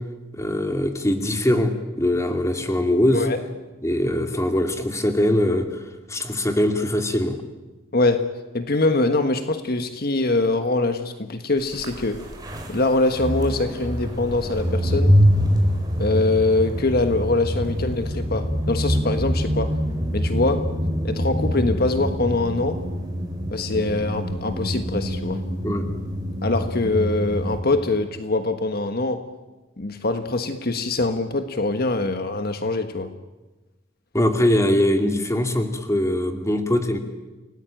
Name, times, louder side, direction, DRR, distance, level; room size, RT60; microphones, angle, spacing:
voice 1, 0.3-3.3 3.8-5.8 6.1-7.4 25.6-25.9 34.1-37.0, left 1 dB, 15° left, 5 dB, 2.5 m, -22 dB
voice 2, 7.9-12.3 12.7-15.1 16.0-19.8 20.1-20.7 21.0-22.8 23.5-25.4 26.4-29.2 29.8-33.1, left 2 dB, 55° left, 8 dB, 1.4 m, -23 dB
sound 1, 11.7-27.6, equal, 20° right, 5.0 m, -25 dB
29.0 x 19.0 x 9.0 m, 1.2 s
head